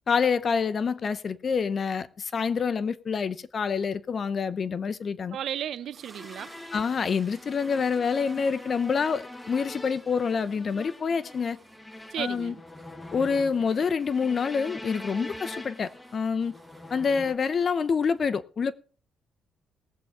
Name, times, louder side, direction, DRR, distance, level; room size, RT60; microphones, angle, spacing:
voice 1, 0.1-5.4 6.7-11.6 12.2-12.5 13.1-16.5 16.9-18.7, left 5 dB, 45° left, 0.7 m, -27 dB
voice 2, 5.3-6.5 12.1-12.6, right 10 dB, 70° right, 0.6 m, -34 dB
sound 1, 5.9-17.0, right 3 dB, 30° right, 5.5 m, -55 dB
sound 2, 6.2-17.4, left 1 dB, 15° left, 1.2 m, -44 dB
19.5 x 7.7 x 3.6 m
cardioid pair, 90°, 0 cm